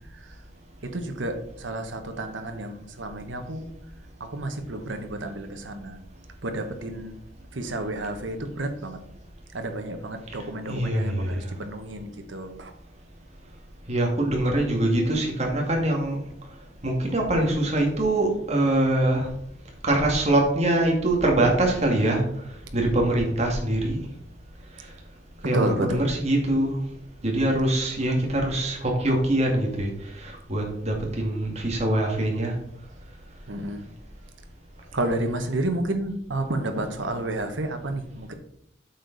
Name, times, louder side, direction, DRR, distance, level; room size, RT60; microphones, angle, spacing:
voice 1, 0.8-3.6 4.2-6.0 6.4-7.2 7.5-9.0 9.5-12.7 25.5-26.0 33.5-33.9 34.9-38.3, right 1 dB, 85° right, 6 dB, 1.2 m, -31 dB
voice 2, 10.7-11.4 13.9-16.2 16.8-19.3 19.8-22.2 22.7-24.0 25.4-26.8 27.2-29.9 30.2-32.5, right 1 dB, 35° right, 0 dB, 2.1 m, -23 dB
8.6 x 6.8 x 4.1 m, 0.71 s
head